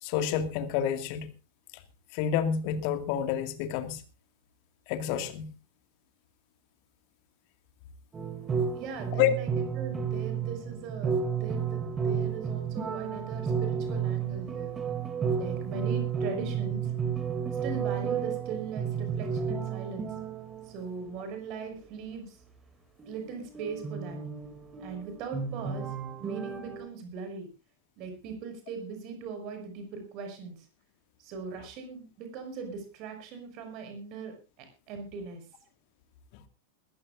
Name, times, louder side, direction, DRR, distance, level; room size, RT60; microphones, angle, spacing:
voice 1, 0.0-1.3 2.1-4.0 4.9-5.5 9.1-9.3, left 9 dB, 45° left, 9 dB, 2.1 m, -28 dB
sound 1, 8.1-20.7 23.0-26.9, right 7 dB, 20° right, 2.9 m, -32 dB
voice 2, 8.7-14.7 15.3-16.9 17.4-20.1 20.6-22.4 23.0-24.2 24.8-25.9 26.2-27.5 28.0-30.7 31.2-35.4, right 5 dB, 40° right, 5 dB, 6.2 m, -40 dB
21.5 x 15.0 x 2.6 m, 0.31 s
figure-of-eight pair, 90°, 0 cm